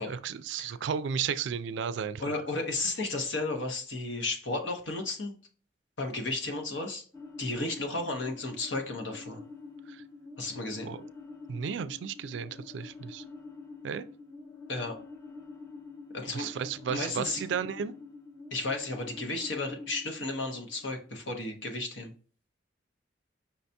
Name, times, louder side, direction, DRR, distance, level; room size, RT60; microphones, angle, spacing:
voice 1, 0.0-2.2 9.9-10.0 10.8-11.0 11.5-13.2 13.8-14.0 16.3-17.9, right 7 dB, 70° right, 0.3 m, -33 dB
voice 2, 2.2-5.3 6.0-7.0 7.4-9.4 10.4-10.9 14.7-15.0 16.1-16.5 16.9-17.4 18.5-22.1, left 2 dB, 75° left, 1.0 m, -33 dB
sound 1, 7.1-21.2, left 4 dB, 20° left, 0.9 m, -47 dB
5.7 x 2.8 x 3.4 m
head